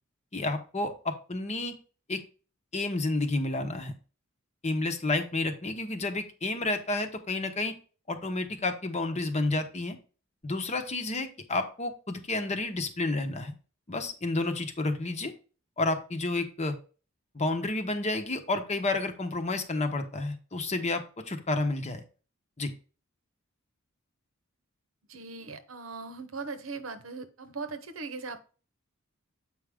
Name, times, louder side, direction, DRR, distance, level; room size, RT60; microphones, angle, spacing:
voice 1, 0.3-1.7 2.1-2.2 2.7-3.9 4.6-7.7 8.1-10.0 10.4-13.5 13.9-15.3 15.8-16.8 17.3-22.0 22.6-22.7, left 2 dB, 35° left, 7 dB, 1.0 m, -30 dB
voice 2, 25.1-28.4, right 4 dB, 75° right, 9 dB, 0.9 m, -39 dB
7.8 x 4.9 x 3.5 m, 0.36 s
head